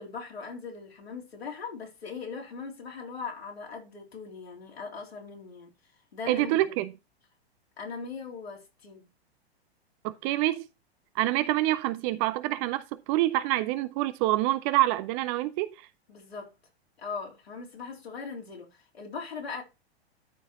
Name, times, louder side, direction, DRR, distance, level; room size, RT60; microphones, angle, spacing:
voice 1, 0.0-6.6 7.8-9.1 16.1-16.5 17.0-19.6, left 5 dB, 70° left, 3.4 m, -40 dB
voice 2, 6.3-6.9 10.0-10.7 11.1-15.9, right 16 dB, 30° right, 0.6 m, -26 dB
13.0 x 4.8 x 2.9 m
figure-of-eight pair, 100°, 32 cm